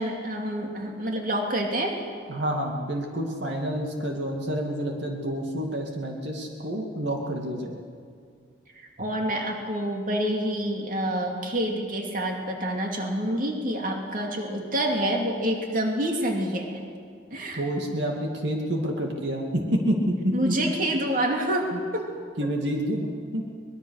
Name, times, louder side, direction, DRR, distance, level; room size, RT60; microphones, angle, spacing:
voice 1, 0.0-2.0 8.7-16.8 17.3-17.6 20.3-22.0, right 1 dB, 45° right, 1 dB, 2.8 m, -27 dB
voice 2, 2.3-7.7 17.5-20.6 21.7-21.8 22.4-23.4, equal, 70° right, 1 dB, 2.4 m, -28 dB
24.0 x 21.0 x 6.6 m, 2.2 s
head